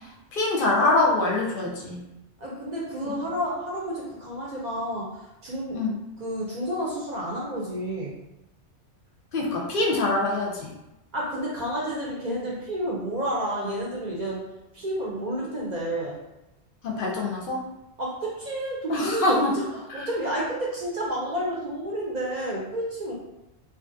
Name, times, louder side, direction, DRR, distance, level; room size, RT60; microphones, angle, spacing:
voice 1, 0.3-2.0 5.7-6.0 9.3-10.7 16.8-17.6 18.9-19.5 19.9-20.1, left 2 dB, 60° left, -1 dB, 0.6 m, -24 dB
voice 2, 2.4-5.8 6.2-8.2 11.1-14.4 14.7-16.2 18.0-23.1, right 1 dB, 50° right, -5 dB, 0.6 m, -30 dB
2.6 x 2.4 x 2.5 m, 0.94 s
omnidirectional pair, 1.1 m